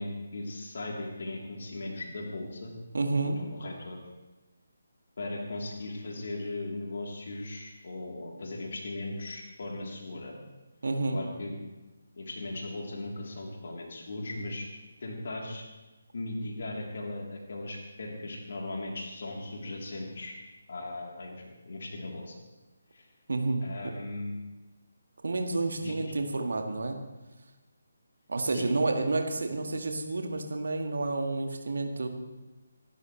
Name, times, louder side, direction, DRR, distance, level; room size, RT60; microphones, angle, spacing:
voice 1, 0.0-2.7 3.4-4.0 5.2-10.3 11.1-11.5 12.2-14.6 15.0-15.6 16.1-20.4 20.7-22.3 22.9-23.1 23.6-24.3 25.8-26.1 28.5-28.7, left 2 dB, 50° left, -1 dB, 3.3 m, -38 dB
voice 2, 2.9-3.4 10.8-11.2 23.3-23.7 25.2-27.0 28.3-32.1, right 3 dB, 55° right, 4 dB, 1.8 m, -30 dB
25.0 x 12.0 x 3.2 m, 1.1 s
figure-of-eight pair, 145°, 0 cm